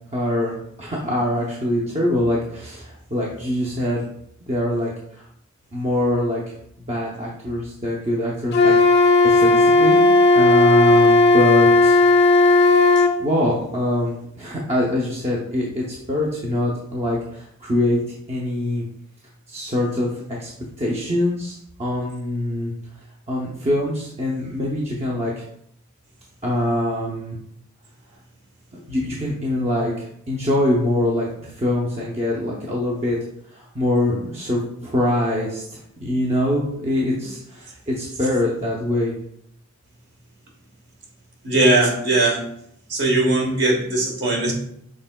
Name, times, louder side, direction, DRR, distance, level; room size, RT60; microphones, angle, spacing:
voice 1, 0.1-0.5 0.8-4.1 4.5-5.3 5.7-10.0 10.3-12.6 13.2-18.0 18.3-18.9 19.5-20.5 20.8-22.7 23.3-25.4 26.4-27.4 28.7-33.2 33.5-39.1, left 1 dB, 30° right, -4 dB, 0.6 m, -24 dB
Wind instrument woodwind instrument, 8.5-13.2, left 2 dB, 50° left, 0.4 m, -14 dB
voice 2, 41.4-42.4 42.9-44.5, right 2 dB, 50° right, 0 dB, 1.1 m, -19 dB
6.5 x 3.5 x 2.2 m, 0.73 s
head